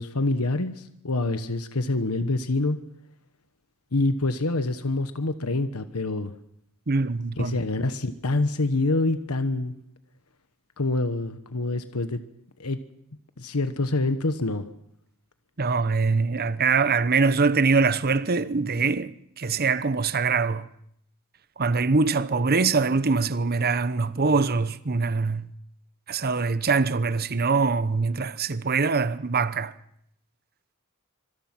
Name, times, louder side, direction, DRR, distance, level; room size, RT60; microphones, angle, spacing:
voice 1, 0.0-2.8 3.9-6.3 7.4-9.7 10.8-12.2 12.6-12.8 13.4-14.7, left 2 dB, 85° left, 1.3 m, -26 dB
voice 2, 6.9-7.6 15.6-20.7 21.6-25.5 26.1-29.7, right 4 dB, 45° right, 0.9 m, -23 dB
25.5 x 24.5 x 6.0 m
head